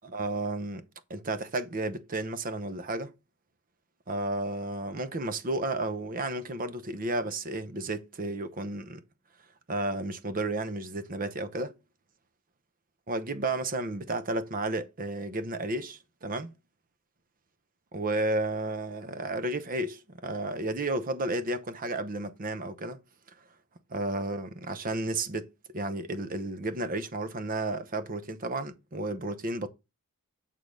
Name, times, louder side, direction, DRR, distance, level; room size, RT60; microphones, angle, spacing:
voice 1, 0.0-0.8 1.1-3.1 4.1-9.0 9.7-11.7 13.1-16.5 17.9-23.0 23.9-25.5 25.7-29.7, right 2 dB, 40° right, 0.8 m, -32 dB
8.6 x 3.7 x 6.3 m
head